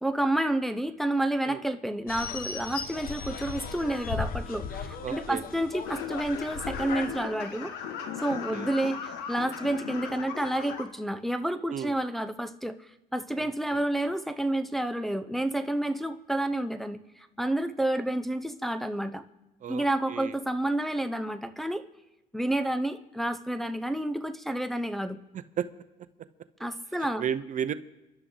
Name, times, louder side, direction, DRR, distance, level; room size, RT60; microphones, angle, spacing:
voice 1, 0.0-7.7 8.2-19.2 19.7-21.8 22.3-25.2 26.6-27.2, right 1 dB, ahead, 8 dB, 0.7 m, -30 dB
sound 1, 2.1-7.1, left 6 dB, 60° left, 1.2 m, -37 dB
voice 2, 5.0-5.5 8.3-8.7 11.7-11.9 13.4-13.8 19.6-20.3 25.3-25.7 27.2-27.7, right 9 dB, 50° right, 13 dB, 0.7 m, -34 dB
sound 2, 5.8-10.8, left 7 dB, 90° left, 1.8 m, -37 dB
28.5 x 11.5 x 3.9 m, 1.0 s
cardioid pair, 110°, 17 cm